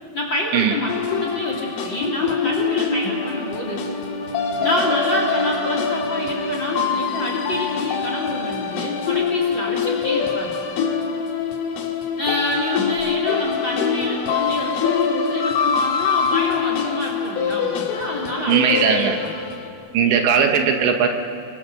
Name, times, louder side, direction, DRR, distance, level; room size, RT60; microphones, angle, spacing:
voice 1, 0.1-3.9 4.6-10.5 12.2-19.3, left 2 dB, 30° left, 0 dB, 2.9 m, -27 dB
sound 1, 0.9-19.6, left 6 dB, 85° left, 4.4 m, -24 dB
voice 2, 18.5-19.2 19.9-21.1, right 7 dB, 75° right, 4 dB, 3.4 m, -18 dB
30.0 x 22.0 x 6.5 m, 2.5 s
omnidirectional pair, 5.4 m